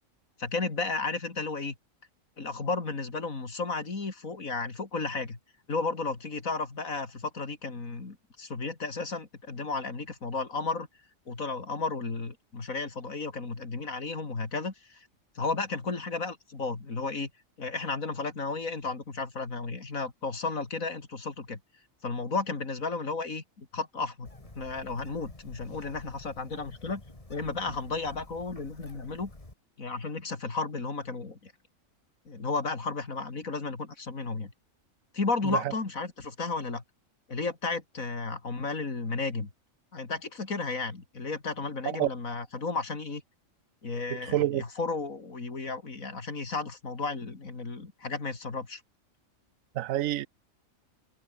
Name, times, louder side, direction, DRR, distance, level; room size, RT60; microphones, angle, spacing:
voice 1, 0.4-1.7 2.4-5.4 5.7-10.9 11.3-15.1 15.4-17.3 17.6-21.6 22.0-24.3 24.6-27.0 27.3-29.3 29.8-31.5 32.3-34.5 35.1-36.8 37.3-39.5 39.9-43.2 43.8-48.8, left 3 dB, 85° left, 3.5 m, -33 dB
Bird, 24.3-29.5, left 2 dB, 25° left, 3.0 m, -49 dB
voice 2, 44.3-44.6 49.8-50.3, right 13 dB, 80° right, 1.0 m, -26 dB
omnidirectional pair, 1.4 m